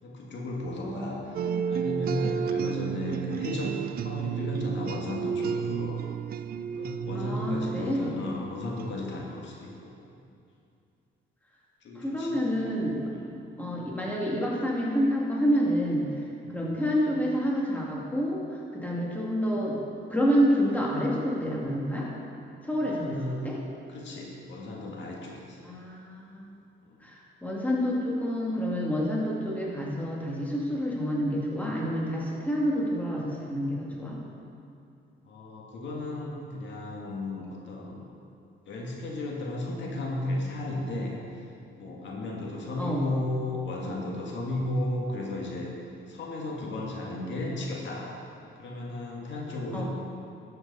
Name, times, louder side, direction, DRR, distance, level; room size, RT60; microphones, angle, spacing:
voice 1, 0.0-6.0 6.8-10.0 11.8-12.4 13.1-13.2 16.4-16.6 22.8-23.5 23.9-25.6 26.8-27.0 35.3-38.1 38.7-41.4 41.8-45.7 46.1-48.1 48.6-49.8, left 2 dB, 65° left, -2 dB, 1.8 m, -34 dB
voice 2, 0.8-1.7 7.1-8.1 12.0-13.1 13.6-16.1 16.5-19.8 20.1-22.1 22.6-23.6 25.6-26.5 27.0-34.2 42.8-43.0 49.7-49.8, equal, 10° left, -4 dB, 2.3 m, -28 dB
sound 1, 1.3-8.9, right 7 dB, 50° right, 0.4 m, -32 dB
12.5 x 7.9 x 4.1 m, 2.6 s
cardioid pair, 90°, 20 cm